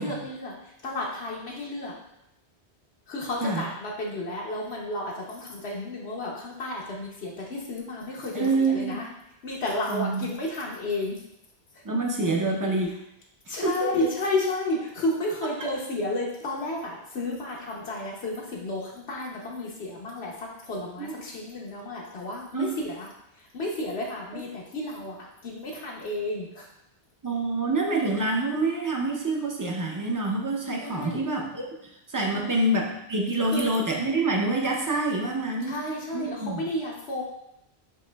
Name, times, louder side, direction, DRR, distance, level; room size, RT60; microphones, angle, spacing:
voice 1, 0.0-1.9 3.1-9.0 9.4-11.2 11.7-11.8 13.5-23.1 23.4-25.2 25.4-26.6 30.8-31.2 32.3-32.6 33.5-33.7 35.6-37.2, left 2 dB, 75° left, -3 dB, 1.0 m, -32 dB
voice 2, 8.3-9.0 9.9-10.3 11.8-12.9 13.5-14.1 21.0-21.1 22.5-22.8 27.2-35.8 36.1-36.6, right 2 dB, 25° right, 0 dB, 0.5 m, -27 dB
7.6 x 3.0 x 2.2 m, 0.81 s
omnidirectional pair, 1.1 m